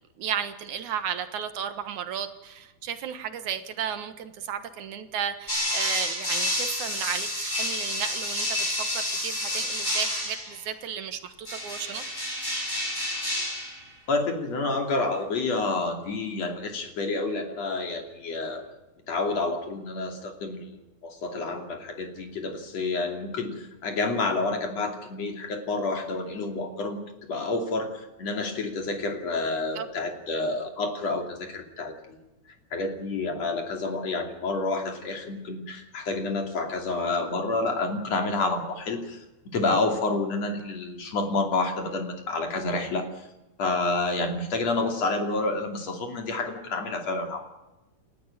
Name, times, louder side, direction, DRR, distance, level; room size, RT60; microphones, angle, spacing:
voice 1, 0.2-12.0 29.8-29.9, right 8 dB, 70° right, 9 dB, 2.8 m, -34 dB
sound 1, 5.5-10.6 11.5-13.8, left 1 dB, 15° left, 7.9 m, -29 dB
voice 2, 14.1-18.6 19.1-32.2 32.7-39.2 39.5-43.3 43.6-47.4, left 3 dB, 55° left, 4 dB, 3.9 m, -29 dB
29.5 x 13.0 x 9.0 m, 1.0 s
omnidirectional pair, 3.6 m